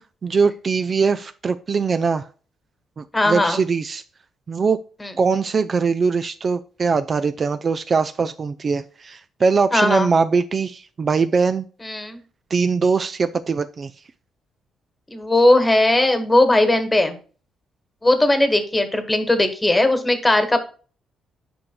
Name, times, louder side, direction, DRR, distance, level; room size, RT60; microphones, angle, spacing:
voice 1, 0.2-2.3 3.0-4.0 4.5-4.8 5.2-11.7 12.5-13.9, right 5 dB, 40° right, 10 dB, 0.4 m, -21 dB
voice 2, 3.1-3.6 5.0-5.1 9.7-10.1 11.8-12.2 15.1-17.2 18.0-20.6, left 1 dB, 15° left, 8 dB, 1.2 m, -18 dB
8.6 x 5.2 x 2.2 m, 0.38 s
cardioid pair, 90°, 0 cm